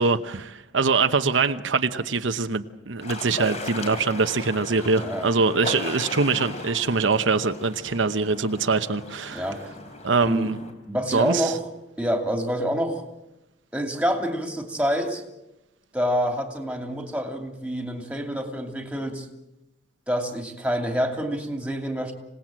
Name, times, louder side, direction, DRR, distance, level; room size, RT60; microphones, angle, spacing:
voice 1, 0.0-9.5 10.0-10.6 11.1-11.5, right 4 dB, 80° right, 9 dB, 0.9 m, -23 dB
sound 1, 3.0-10.7, left 2 dB, 35° left, 3.3 m, -37 dB
voice 2, 4.9-5.3 9.3-9.6 10.3-10.5 10.9-11.7 12.0-13.0 13.7-15.2 15.9-19.3 20.1-22.1, equal, 5° right, 4 dB, 2.7 m, -27 dB
26.5 x 18.5 x 7.6 m, 0.91 s
head